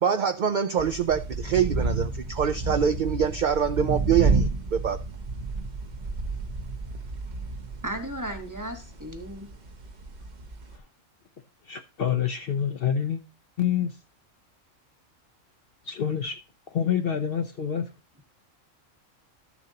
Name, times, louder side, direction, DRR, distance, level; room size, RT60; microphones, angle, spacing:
voice 1, 0.0-5.0, right 7 dB, 60° right, 0.5 m, -25 dB
sound 1, 0.8-10.8, right 3 dB, 40° right, 0.8 m, -30 dB
voice 2, 7.8-9.5, right 1 dB, 15° right, 1.2 m, -35 dB
voice 3, 11.7-13.2 13.6-13.9 15.9-16.4 16.7-17.9, left 8 dB, 55° left, 0.8 m, -27 dB
13.0 x 7.0 x 2.8 m
omnidirectional pair, 1.3 m